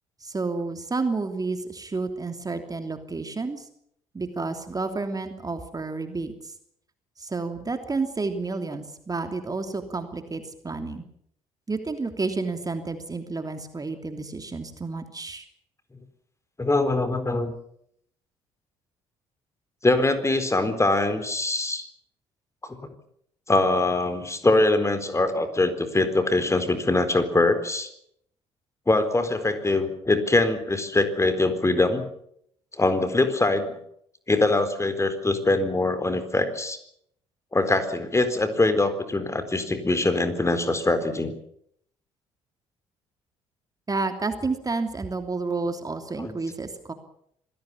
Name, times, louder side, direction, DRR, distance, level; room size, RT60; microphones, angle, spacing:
voice 1, 0.2-3.7 4.1-6.5 7.2-11.0 11.7-15.4 43.9-46.9, right 3 dB, 25° right, 7 dB, 3.0 m, -30 dB
voice 2, 16.6-17.5 19.8-21.9 22.6-22.8 23.5-27.9 28.9-32.1 32.8-33.8 34.3-36.8 37.5-41.3 46.2-46.3, left 2 dB, 20° left, 10 dB, 4.2 m, -23 dB
26.0 x 17.5 x 7.2 m, 0.70 s
figure-of-eight pair, 50°, 15 cm